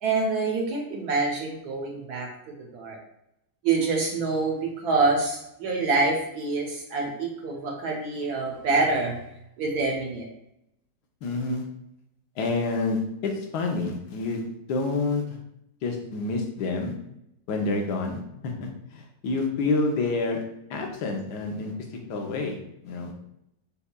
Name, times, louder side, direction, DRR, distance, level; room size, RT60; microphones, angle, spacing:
voice 1, 0.0-2.3 2.7-3.0 3.6-9.2 9.6-10.3, right 3 dB, 70° right, 0 dB, 1.1 m, -26 dB
voice 2, 11.2-11.6 12.4-15.2 15.8-16.9 17.5-20.4 20.7-21.7 22.1-22.6 22.8-23.1, left 3 dB, 70° left, 2 dB, 1.2 m, -28 dB
5.3 x 2.3 x 2.2 m, 0.80 s
omnidirectional pair, 2.0 m